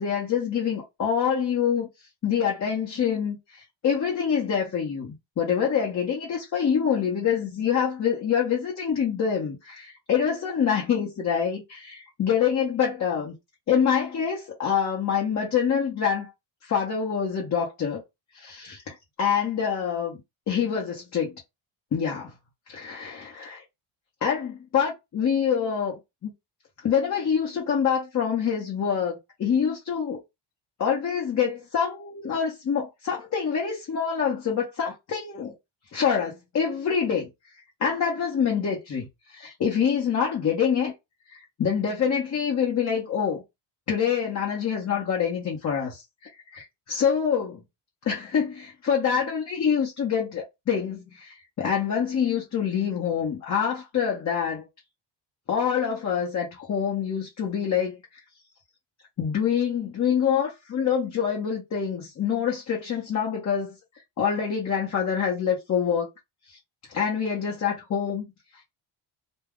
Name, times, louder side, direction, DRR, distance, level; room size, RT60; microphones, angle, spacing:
voice 1, 0.0-1.9 2.2-13.3 13.7-16.3 16.6-18.0 18.3-20.2 20.5-21.3 21.9-22.3 22.7-23.6 24.2-26.3 26.8-30.2 30.8-35.5 35.9-37.3 37.8-40.9 41.3-43.4 43.9-47.6 48.0-54.7 55.5-58.0 59.2-63.7 64.2-66.1 66.5-66.6 66.9-68.3, left 7 dB, 35° left, 0.8 m, -26 dB
2.3 x 2.2 x 3.4 m
cardioid pair, 130°, 47 cm